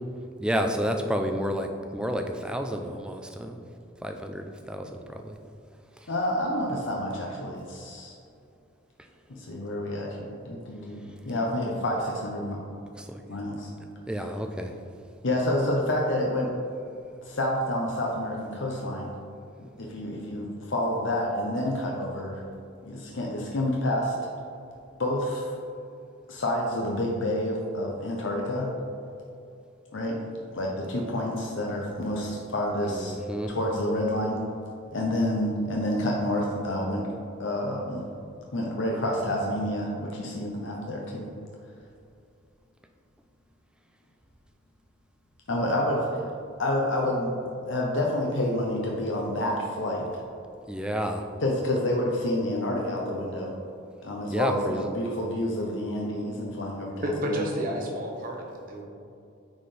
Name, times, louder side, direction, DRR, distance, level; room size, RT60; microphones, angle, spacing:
voice 1, 0.4-3.6 4.0-5.4 13.0-13.4 14.1-14.7 32.8-33.5 50.7-51.2 54.3-54.9, equal, 5° right, 4 dB, 0.3 m, -30 dB
voice 2, 6.1-8.1 9.3-12.6 13.3-13.7 14.2-14.3 15.2-16.5 17.2-19.1 19.8-22.4 22.8-24.1 25.0-25.5 26.3-28.7 29.9-30.2 30.5-33.1 33.5-34.4 34.9-37.0 37.4-38.0 38.5-41.3 45.5-46.1 46.6-47.3 47.7-50.2 51.4-53.5 54.0-57.6, left 1 dB, 65° left, -1 dB, 0.7 m, -28 dB
voice 3, 57.0-58.8, equal, 45° right, 1 dB, 1.0 m, -30 dB
9.3 x 4.3 x 3.3 m, 2.6 s
head